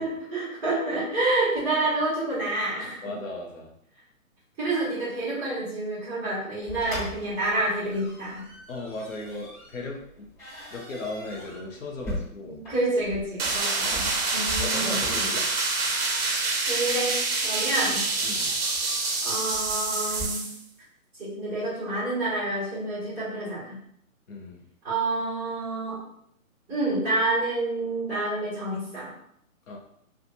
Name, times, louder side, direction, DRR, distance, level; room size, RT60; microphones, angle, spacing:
voice 1, 0.0-3.0 4.6-8.4 12.5-15.3 16.7-17.2 17.4-18.0 19.2-20.5 21.2-23.8 24.8-26.0 26.7-29.1, right 2 dB, 10° right, -12 dB, 0.8 m, -28 dB
voice 2, 3.0-3.7 8.7-10.3 10.7-12.6 14.3-15.5 18.2-18.5 24.3-24.6 29.7-29.8, left 2 dB, 65° left, 0 dB, 0.9 m, -37 dB
sound 1, 6.7-20.3, equal, 25° left, 1.5 m, -41 dB
sound 2, 13.4-20.6, right 3 dB, 45° right, 0.6 m, -27 dB
2.6 x 2.4 x 2.6 m, 0.72 s
figure-of-eight pair, 140°, 43 cm